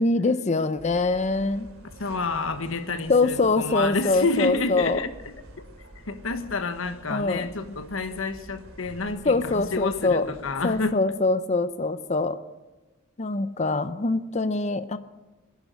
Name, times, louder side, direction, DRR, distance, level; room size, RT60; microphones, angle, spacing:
voice 1, 0.0-1.7 3.1-5.0 7.1-7.5 9.3-10.3 10.6-12.4 13.2-15.0, left 3 dB, 35° left, 12 dB, 0.6 m, -24 dB
sound 1, 0.8-10.8, right 1 dB, 90° right, 2.7 m, -48 dB
voice 2, 2.0-5.1 5.6-11.0, left 3 dB, 70° left, 9 dB, 1.3 m, -29 dB
20.0 x 10.5 x 6.6 m, 1.1 s
head